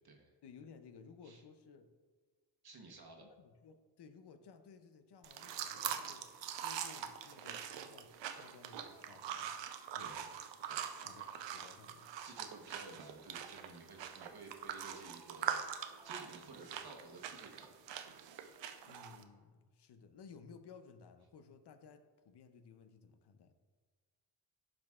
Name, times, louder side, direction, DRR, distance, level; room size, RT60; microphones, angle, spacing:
voice 1, 0.4-1.9 3.2-6.3 6.6-9.6 9.9-10.3 11.0-12.1 18.9-23.5, left 5 dB, 70° left, 9 dB, 0.7 m, -57 dB
voice 2, 2.6-3.3 10.0-10.2 10.7-10.9 12.3-15.6 16.0-17.7, right 3 dB, 60° right, 1 dB, 1.1 m, -54 dB
sound 1, 5.2-19.2, right 9 dB, 85° right, 0.6 m, -43 dB
11.5 x 5.0 x 2.4 m, 1.5 s
cardioid pair, 85°, 42 cm